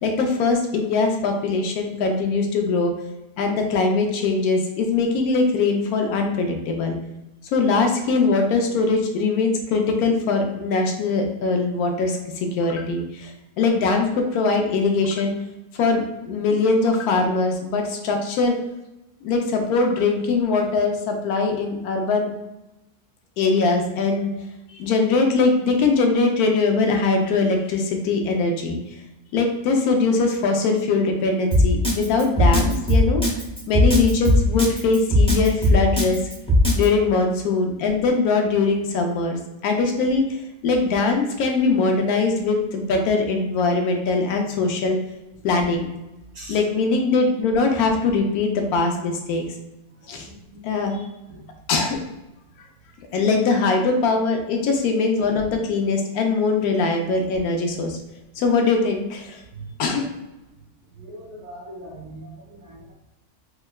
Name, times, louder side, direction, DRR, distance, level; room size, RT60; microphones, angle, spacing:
voice 1, 0.0-2.9 3.4-7.0 7.5-13.3 13.6-15.3 15.7-18.5 19.2-22.3 23.4-24.3 24.7-28.8 29.3-33.2 33.7-36.2 36.7-40.2 40.6-45.0 45.4-45.9 46.5-49.4 50.1-50.3 50.6-51.1 51.7-52.0 53.1-58.0 58.4-59.4 59.8-60.1, left 3 dB, 80° left, 3 dB, 1.1 m, -21 dB
Drum kit, 31.5-36.9, left 1 dB, 5° left, 0.4 m, -17 dB
voice 2, 50.0-51.0 51.3-51.4 61.0-62.9, right 1 dB, 70° right, -1 dB, 0.7 m, -41 dB
4.5 x 2.1 x 2.2 m, 0.98 s
omnidirectional pair, 1.6 m